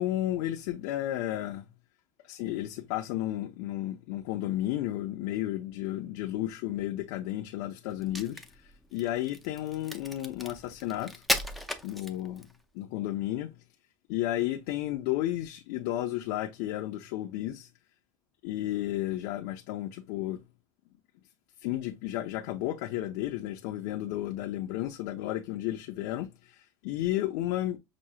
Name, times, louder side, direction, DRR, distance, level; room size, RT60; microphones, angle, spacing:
voice 1, 0.0-1.7 2.2-11.2 11.8-12.5 12.7-13.5 14.1-17.7 18.4-20.4 21.6-27.8, left 14 dB, 65° left, 0.6 m, -33 dB
Crack, 7.9-12.6, left 1 dB, ahead, 0.4 m, -35 dB
6.1 x 2.3 x 2.8 m
cardioid pair, 160°, 9 cm